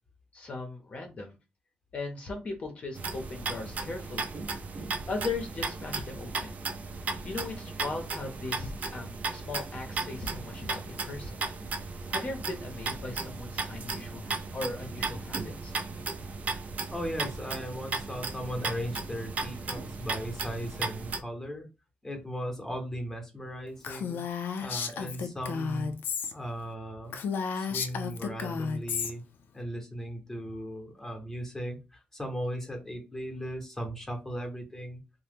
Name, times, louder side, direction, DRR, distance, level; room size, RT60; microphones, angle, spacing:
voice 1, 0.3-1.4 1.9-4.4 5.1-6.6 7.2-11.4 11.8-15.7, left 3 dB, 40° left, 3 dB, 0.6 m, -38 dB
sound 1, 2.9-21.2, right 4 dB, 50° right, 0.5 m, -36 dB
voice 2, 16.9-21.7 22.0-24.3 24.6-25.9 26.3-27.2 27.5-29.2 29.5-35.0, equal, 10° left, 3 dB, 0.8 m, -37 dB
Female speech woman speaking, 23.8-26.3 26.7-26.8 27.1-29.1, left 6 dB, 85° left, 0.4 m, -33 dB
2.8 x 2.1 x 3.4 m, 0.28 s
wide cardioid pair, 145°, 3 cm